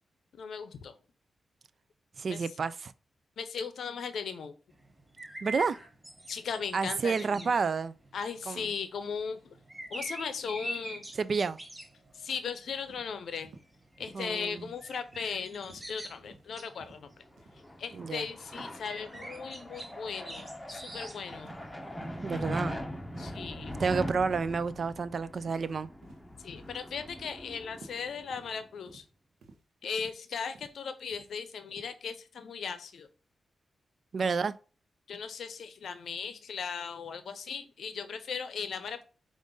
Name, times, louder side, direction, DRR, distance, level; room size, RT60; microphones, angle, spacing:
voice 1, 0.3-1.0 2.3-2.6 3.4-4.5 6.3-7.6 8.1-9.6 9.9-11.1 12.1-13.5 14.0-17.1 17.8-21.5 23.2-23.8 26.4-29.1 29.8-33.1 35.1-39.1, left 6 dB, 80° left, 0.6 m, -38 dB
voice 2, 2.2-2.9 5.4-5.8 6.7-7.9 8.5-8.6 11.2-11.6 14.1-14.7 18.0-18.2 22.2-22.8 23.8-25.9 34.1-34.5, right 5 dB, 60° right, 0.3 m, -30 dB
sound 1, 4.7-22.7, right 1 dB, 20° right, 1.0 m, -46 dB
sound 2, 12.9-13.1 13.4-13.7 14.0-14.2 14.6-14.8 15.1-15.4 15.7-15.9 16.2-16.5 16.8-17.0 17.4-17.6 17.9-18.2 18.5-18.7 19.1-19.3 19.7-19.9 20.3-20.5 20.9-21.1 21.4-21.7 22.0-22.2 22.6-22.9 23.1-23.3 23.7-24.0 24.3-24.5 24.8-25.0 25.4-25.7 26.0-26.3 26.6-26.8 27.2-27.4 27.7-28.0 28.3-28.5 28.9-29.1 29.4-29.6 30.0-30.2 30.5-30.7 31.1-31.3 31.7-31.9, right 3 dB, 85° right, 0.7 m, -54 dB
sound 3, 17.4-28.6, equal, 10° left, 0.8 m, -41 dB
5.1 x 2.5 x 3.7 m
cardioid pair, 65°, 0 cm